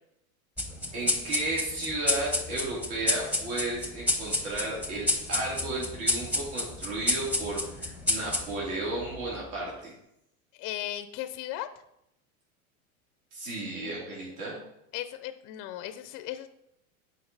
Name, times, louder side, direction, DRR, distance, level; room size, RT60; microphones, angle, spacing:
sound 1, 0.6-9.5, left 1 dB, 5° right, 0.7 m, -31 dB
voice 1, 0.9-9.9 13.3-14.6, right 2 dB, 75° right, -5 dB, 3.0 m, -33 dB
voice 2, 10.6-11.7 14.9-16.5, left 13 dB, 30° left, 10 dB, 0.4 m, -36 dB
7.9 x 4.6 x 4.1 m, 0.81 s
supercardioid pair, 120°, 43 cm